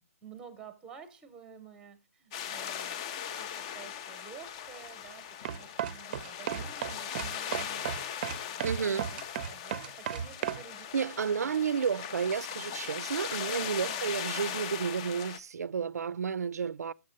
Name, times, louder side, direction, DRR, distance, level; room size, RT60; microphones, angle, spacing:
voice 1, 0.0-3.0 3.3-11.7 13.8-14.1, right 7 dB, 5° right, 0.8 m, -51 dB
sound 1, 2.3-15.4, left 9 dB, 25° left, 0.4 m, -39 dB
sound 2, 5.4-10.6, right 9 dB, 35° right, 0.5 m, -34 dB
voice 2, 8.6-9.1 10.9-16.9, right 6 dB, 90° right, 0.3 m, -31 dB
6.9 x 5.4 x 5.1 m
hypercardioid pair, 160°, 8 cm